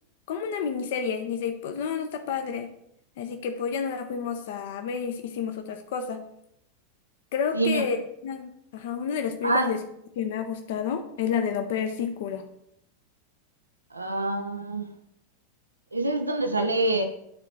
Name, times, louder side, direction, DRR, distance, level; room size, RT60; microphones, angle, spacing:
voice 1, 0.3-2.7 3.2-6.2 7.3-8.0 8.2-9.8 10.2-12.5, left 7 dB, 55° left, 7 dB, 0.6 m, -30 dB
voice 2, 7.5-7.9 9.4-9.7 13.9-14.9 15.9-17.0, right 2 dB, 80° right, 6 dB, 0.6 m, -26 dB
9.6 x 4.0 x 4.5 m, 0.77 s
figure-of-eight pair, 90°, 0 cm